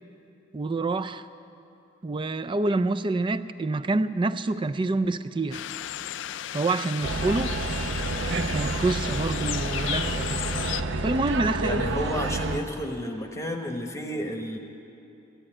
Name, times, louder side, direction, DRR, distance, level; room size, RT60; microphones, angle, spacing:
voice 1, 0.5-1.3 2.0-5.6 6.5-7.5 8.2-10.4 11.0-11.9, right 2 dB, 25° right, 12 dB, 0.4 m, -27 dB
sound 1, 5.5-10.8, left 12 dB, 65° left, 0.4 m, -34 dB
sound 2, 7.0-12.6, right 2 dB, 65° right, 0.7 m, -29 dB
voice 2, 11.6-14.6, equal, 15° left, 3 dB, 1.0 m, -31 dB
14.5 x 11.0 x 8.8 m, 2.7 s
head